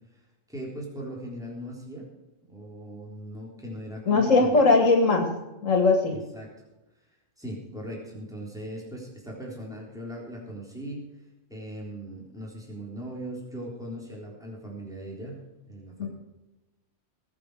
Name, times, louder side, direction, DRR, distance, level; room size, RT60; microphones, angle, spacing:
voice 1, 0.5-2.1 2.5-4.7 6.1-6.5 7.4-11.1 11.5-15.4 15.7-16.1, right 1 dB, 5° right, -3 dB, 3.7 m, -39 dB
voice 2, 4.1-5.3 5.6-6.2 16.0-16.1, left 3 dB, 85° left, 2 dB, 2.5 m, -20 dB
20.0 x 8.4 x 4.9 m, 1.0 s
omnidirectional pair, 1.3 m